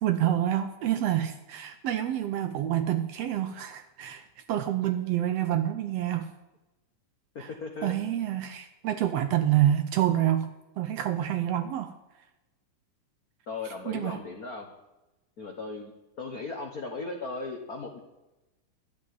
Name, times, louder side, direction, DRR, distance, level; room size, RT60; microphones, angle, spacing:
voice 1, 0.0-6.3 7.4-7.5 7.8-10.5 10.8-11.9 13.9-14.2, right 12 dB, 75° right, 9 dB, 1.6 m, -27 dB
voice 2, 7.3-8.0 13.5-14.7 15.4-15.9 16.2-18.0, left 3 dB, 65° left, 3 dB, 0.8 m, -37 dB
12.0 x 7.1 x 9.4 m, 1.0 s
omnidirectional pair, 3.4 m